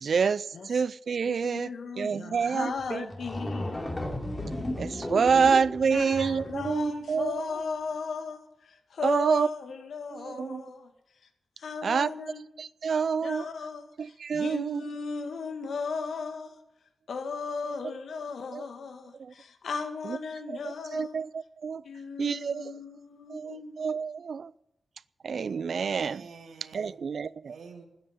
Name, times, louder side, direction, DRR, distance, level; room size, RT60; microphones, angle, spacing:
voice 1, 0.0-1.7 2.0-3.1 4.8-7.5 9.0-9.5 10.1-10.6 11.8-12.1 12.6-13.5 14.0-14.8 17.6-17.7 18.5-18.6 19.2-19.3 20.0-20.2 20.5-21.8 22.2-22.8 23.3-24.5 25.2-26.3 26.7-27.6, right 6 dB, 65° right, 0.4 m, -28 dB
voice 2, 1.3-3.8 5.3-5.4 5.8-10.9 11.6-12.4 13.2-16.5 17.1-21.2 21.8-23.7, left 5 dB, 75° left, 1.8 m, -36 dB
sound 1, 2.8-2.9 3.1-6.9, left 1 dB, 20° left, 3.1 m, -35 dB
voice 3, 25.3-27.0 27.5-27.8, right 5 dB, 85° right, 2.5 m, -48 dB
13.5 x 9.9 x 9.7 m
cardioid pair, 90°, 0 cm